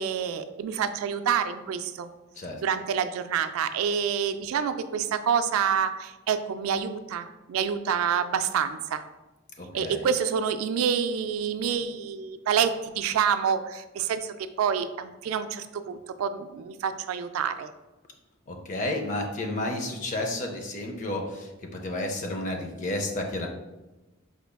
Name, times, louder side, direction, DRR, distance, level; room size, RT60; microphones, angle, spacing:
voice 1, 0.0-2.1 2.6-9.0 9.7-17.7, right 7 dB, 90° right, 10 dB, 0.3 m, -27 dB
voice 2, 9.6-10.1 18.5-23.5, left 1 dB, 35° left, 2 dB, 0.5 m, -31 dB
4.8 x 3.4 x 2.2 m, 1.1 s
head